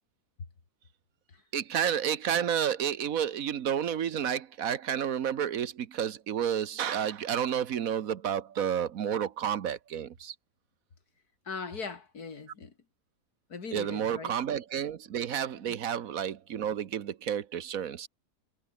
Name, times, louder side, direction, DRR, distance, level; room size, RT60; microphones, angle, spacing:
voice 1, 1.5-10.3 13.7-18.1, right 9 dB, 65° right, 1.4 m, -30 dB
voice 2, 11.5-12.7 13.5-14.3, left 5 dB, 80° left, 3.0 m, -39 dB
omnidirectional pair, 1.6 m